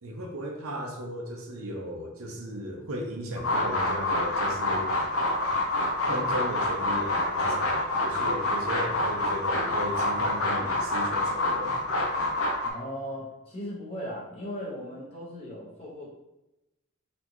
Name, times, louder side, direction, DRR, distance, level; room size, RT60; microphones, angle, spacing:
voice 1, 0.0-4.9 6.0-11.8, equal, 85° right, 2 dB, 0.7 m, -36 dB
sound 1, 3.4-12.7, left 2 dB, 75° left, 0.8 m, -27 dB
voice 2, 12.6-16.1, equal, 30° left, -6 dB, 1.2 m, -37 dB
4.2 x 2.9 x 3.0 m, 0.94 s
head